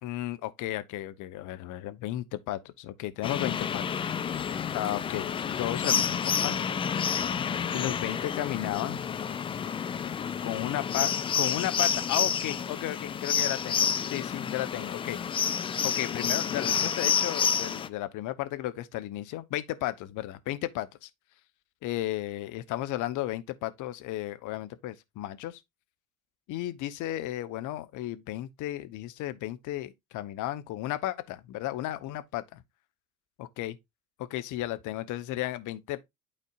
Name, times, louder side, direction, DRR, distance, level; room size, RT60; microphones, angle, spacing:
voice 1, 0.0-4.1 4.7-6.7 7.7-9.0 10.4-15.4 15.8-21.1 21.8-25.6 26.5-32.6 33.4-33.7 34.2-36.0, left 14 dB, 45° left, 0.9 m, -34 dB
sound 1, 3.2-17.9, left 7 dB, 15° left, 0.3 m, -29 dB
12.0 x 4.2 x 2.4 m
figure-of-eight pair, 65°, 43 cm